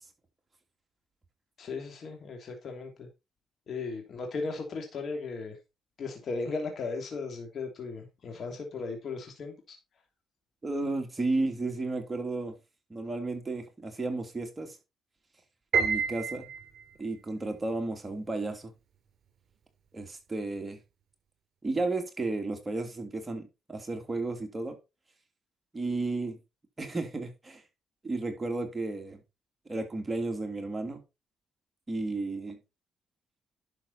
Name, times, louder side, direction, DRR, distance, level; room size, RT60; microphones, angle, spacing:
voice 1, 1.6-3.1 3.7-5.5 6.0-9.5, left 4 dB, 55° left, 3.0 m, -36 dB
voice 2, 10.6-12.5 12.9-14.8 15.8-16.5 17.0-18.7 19.9-20.8 21.6-24.7 25.7-26.4 26.8-27.6 28.0-29.2 29.7-31.0 31.9-32.6, right 2 dB, 20° right, 3.0 m, -33 dB
Piano, 15.7-17.0, right 6 dB, 60° right, 3.3 m, -29 dB
11.5 x 6.6 x 4.3 m
cardioid pair, 90°, 0 cm